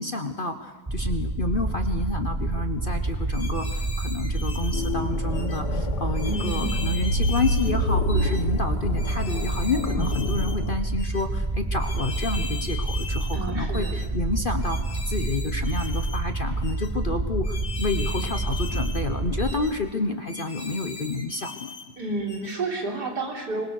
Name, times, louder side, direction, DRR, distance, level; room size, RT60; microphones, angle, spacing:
voice 1, 0.0-14.8 15.1-21.7, left 3 dB, 35° left, 7 dB, 1.2 m, -29 dB
sound 1, 0.9-19.5, right 2 dB, 15° right, 0.9 m, -28 dB
sound 2, 3.3-4.9 5.3-5.6 6.1-7.8 8.1-8.4 9.0-10.6 11.0-11.2 11.8-13.4 13.7-14.1 14.6-16.2 16.6-16.9 17.4-19.1 19.4-19.7 20.3-21.9 22.3-22.6, left 4 dB, 55° left, 2.4 m, -39 dB
sound 3, 4.7-10.8, left 1 dB, 80° left, 1.9 m, -28 dB
voice 2, 6.2-6.8 13.3-14.0 22.0-23.6, right 3 dB, 70° right, 1 dB, 4.2 m, -30 dB
25.0 x 22.0 x 6.6 m, 1.2 s
omnidirectional pair, 1.8 m